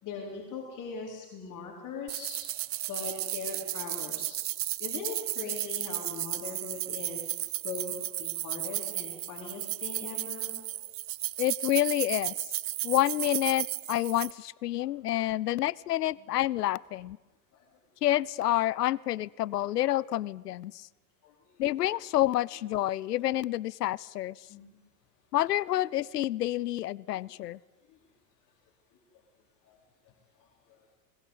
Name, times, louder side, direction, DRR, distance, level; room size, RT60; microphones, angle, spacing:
voice 1, 0.0-2.4 2.9-4.4 4.8-10.8 14.8-14.9 16.2-16.3 17.5-17.6 21.2-21.6 24.5-24.8 25.7-25.8 27.1-27.3 27.9-28.0 28.9-29.0 29.6-29.8 30.0-30.9, left 5 dB, 40° left, -1 dB, 4.3 m, -41 dB
sound 1, 2.1-14.3, right 16 dB, 30° right, 0.6 m, -34 dB
voice 2, 11.4-12.3 12.8-17.2 18.0-20.9 21.6-24.4 25.3-27.6, left 14 dB, 80° left, 24 dB, 0.6 m, -28 dB
20.5 x 19.5 x 8.2 m, 1.2 s
hypercardioid pair, 90°, 47 cm